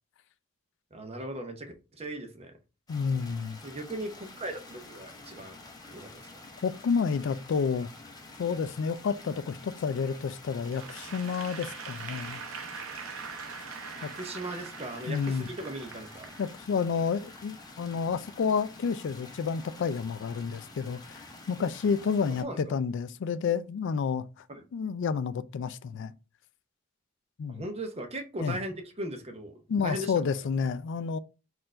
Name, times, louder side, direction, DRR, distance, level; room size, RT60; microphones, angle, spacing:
voice 1, 0.9-2.5 3.6-5.6 5.9-6.3 13.9-16.3 22.4-22.7 24.5-24.6 27.5-30.1, right 1 dB, 30° right, 0.7 m, -38 dB
voice 2, 2.9-3.6 6.6-7.9 8.4-12.4 14.0-14.1 15.1-15.5 16.4-21.2 21.5-24.2 24.7-26.1 27.4-27.6 28.4-28.6 29.7-31.2, left 6 dB, 60° left, 0.3 m, -30 dB
sound 1, 2.9-22.4, left 2 dB, 20° left, 0.7 m, -48 dB
Applause / Crowd, 10.6-16.9, right 6 dB, 70° right, 0.7 m, -43 dB
4.3 x 2.5 x 4.3 m
head